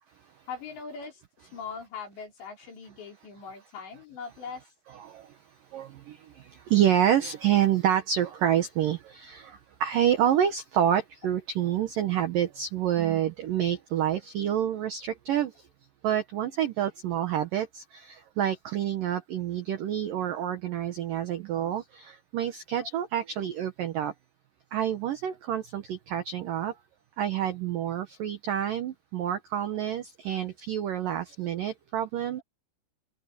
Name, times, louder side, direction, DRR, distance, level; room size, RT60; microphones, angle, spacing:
voice 1, 0.5-1.2 1.5-4.6 22.8-22.9, left 5 dB, 60° left, 7.1 m, -40 dB
voice 2, 4.9-5.3 5.7-15.5 16.0-24.1 24.7-26.7 27.2-32.4, right 10 dB, 80° right, 1.9 m, -28 dB
open air
omnidirectional pair, 5.7 m